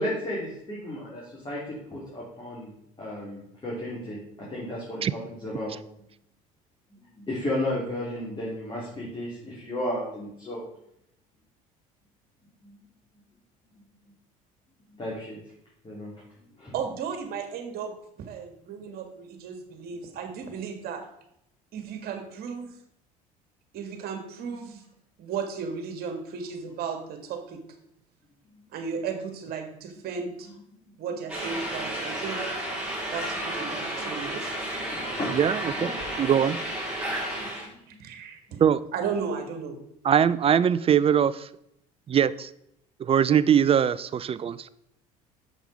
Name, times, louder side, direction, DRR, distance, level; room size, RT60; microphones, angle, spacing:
voice 1, 0.0-2.7 3.0-5.8 7.1-10.6 12.6-12.8 14.9-15.4 15.8-16.1 16.6-16.7 18.7-18.8 21.9-22.0 24.4-24.6 28.5-28.6 33.8-34.1 34.7-36.3 37.4-38.0, left 1 dB, 25° left, -6 dB, 3.3 m, -34 dB
voice 2, 16.7-17.9 18.3-21.0 21.7-22.7 23.7-24.8 25.2-27.6 28.7-30.5 31.0-32.5 33.1-34.4 38.0-38.6 38.9-39.8, right 6 dB, 60° right, 6 dB, 1.8 m, -34 dB
sound 1, 31.3-37.7, right 1 dB, 5° right, 3.3 m, -32 dB
voice 3, 35.3-35.9 36.2-36.6 38.6-38.8 40.0-41.4 42.1-42.5 43.0-44.7, right 8 dB, 30° right, 16 dB, 0.5 m, -22 dB
7.4 x 5.4 x 4.9 m, 0.76 s
supercardioid pair, 80°, 18 cm